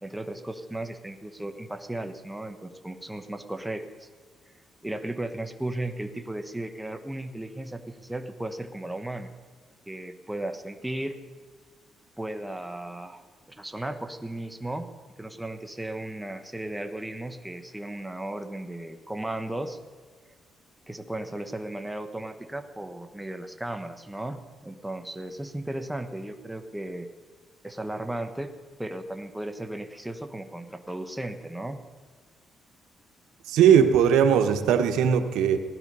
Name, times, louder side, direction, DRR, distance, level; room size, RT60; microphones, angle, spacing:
voice 1, 0.0-4.1 4.8-9.3 9.9-11.2 12.2-13.2 13.5-14.9 15.2-19.8 20.9-27.1 27.6-28.5 28.8-31.8, right 1 dB, 5° right, 7 dB, 1.1 m, -35 dB
voice 2, 33.5-35.6, right 8 dB, 90° right, 7 dB, 1.1 m, -19 dB
17.0 x 11.5 x 5.4 m, 1.5 s
cardioid pair, 90°, 0 cm